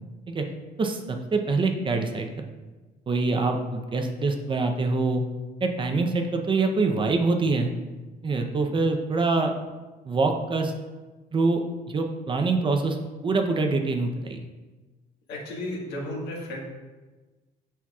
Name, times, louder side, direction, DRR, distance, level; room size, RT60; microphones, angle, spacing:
voice 1, 0.8-2.4 3.1-5.2 5.6-7.7 8.2-9.5 10.1-10.7 11.3-11.6 11.9-13.0 13.2-14.5, right 3 dB, 30° right, 4 dB, 0.6 m, -25 dB
voice 2, 15.3-16.6, left 1 dB, 80° left, -2 dB, 1.6 m, -33 dB
7.2 x 5.7 x 2.4 m, 1.2 s
cardioid pair, 110°, 17 cm